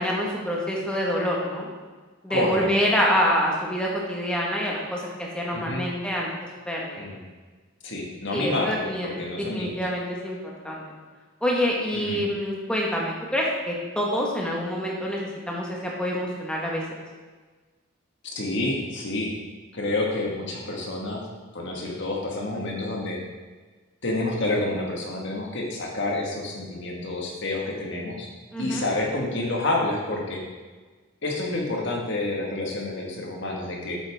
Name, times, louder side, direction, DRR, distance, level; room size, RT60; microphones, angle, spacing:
voice 1, 0.0-1.7 2.2-6.3 6.7-7.0 8.3-10.4 10.6-10.8 11.4-16.8 28.5-28.9, equal, 5° left, -3 dB, 1.3 m, -26 dB
voice 2, 2.3-2.9 5.5-5.8 7.0-7.2 7.8-9.8 11.9-12.2 18.2-19.3 19.7-21.2 21.5-23.2 24.0-28.3 28.6-30.4 31.2-34.0, left 2 dB, 55° left, -1 dB, 1.6 m, -28 dB
8.2 x 8.0 x 3.5 m, 1.4 s
head